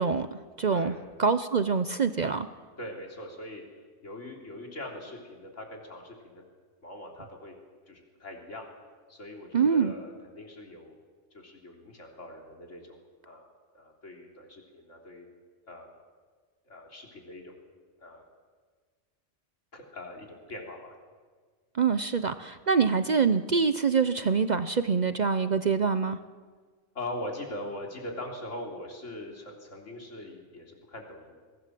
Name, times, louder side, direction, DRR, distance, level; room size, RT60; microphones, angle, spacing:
voice 1, 0.0-2.5 9.5-9.9 21.7-26.2, right 5 dB, 45° right, 11 dB, 0.7 m, -25 dB
voice 2, 0.7-1.0 2.8-3.6 4.0-6.4 6.8-7.5 7.9-8.6 9.1-11.0 11.3-13.0 13.2-13.5 13.7-15.3 15.7-15.9 16.7-17.5 18.0-18.2 19.7-21.0 26.9-31.3, left 1 dB, 80° left, 0 dB, 3.8 m, -41 dB
23.0 x 17.5 x 7.6 m, 1.5 s
omnidirectional pair, 1.3 m